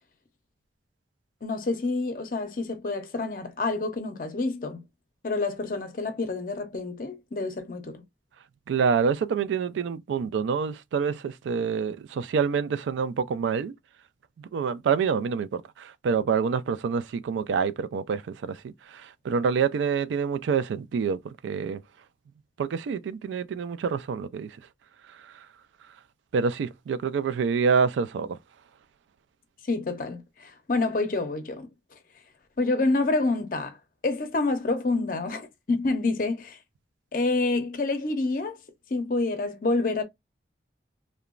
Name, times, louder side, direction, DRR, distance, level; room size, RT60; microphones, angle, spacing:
voice 1, 1.4-4.8 5.2-8.0 29.7-31.7 32.6-33.8 34.0-36.6 37.1-38.6 38.9-40.0, left 3 dB, 50° left, 0.5 m, -28 dB
voice 2, 8.7-13.7 14.5-18.7 19.2-21.2 21.4-21.8 22.6-24.5 26.3-28.3, right 6 dB, 85° right, 0.3 m, -26 dB
2.9 x 2.1 x 2.3 m
head